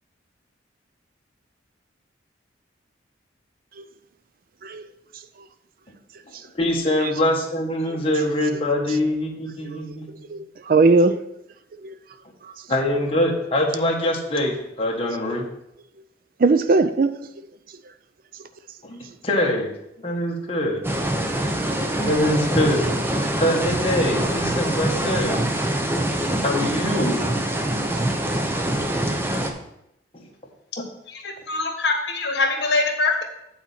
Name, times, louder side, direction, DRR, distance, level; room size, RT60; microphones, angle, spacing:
voice 1, 6.5-10.3 12.7-15.5 18.8-19.7 20.0-20.8 21.9-22.9 23.4-25.5 26.4-27.3 30.1-30.3 30.8-30.9, left 1 dB, 30° left, 1.4 m, -23 dB
voice 2, 10.3-11.2 11.8-11.9 12.4-12.5 16.4-17.2, right 3 dB, 50° right, 0.4 m, -19 dB
sound 1, 20.8-29.5, right 1 dB, 10° right, 0.7 m, -24 dB
voice 3, 31.1-33.2, left 3 dB, 65° left, 1.4 m, -23 dB
8.6 x 4.1 x 5.8 m
head